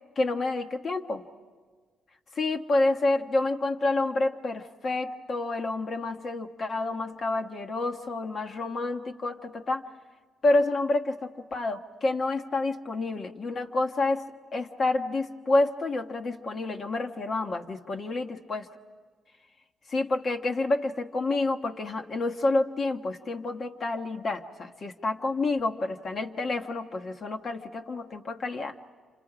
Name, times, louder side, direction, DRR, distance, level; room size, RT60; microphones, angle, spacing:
voice 1, 0.2-1.2 2.3-9.8 10.4-14.2 14.5-18.7 19.9-28.7, left 2 dB, 45° left, 3 dB, 1.3 m, -28 dB
30.0 x 26.5 x 5.0 m, 1.6 s
cardioid pair, 90°, 0 cm